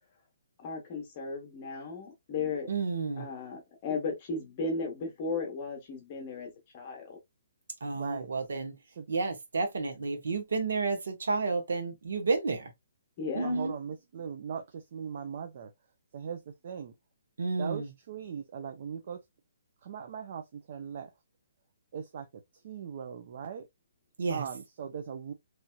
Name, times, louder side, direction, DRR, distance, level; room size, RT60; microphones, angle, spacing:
voice 1, 0.6-2.7 3.2-7.2 13.2-13.6, left 4 dB, 25° left, 1.0 m, -35 dB
voice 2, 2.7-3.3 7.8-8.8 9.1-12.7 13.3-13.7 17.4-17.9 24.2-24.5, right 4 dB, 75° right, 1.1 m, -31 dB
voice 3, 7.9-8.3 9.0-9.1 13.4-15.7 16.1-16.9 17.6-19.2 19.8-21.1 21.9-23.7 24.3-25.3, right 7 dB, 35° right, 0.4 m, -39 dB
3.0 x 2.8 x 2.2 m
hypercardioid pair, 175°, 0 cm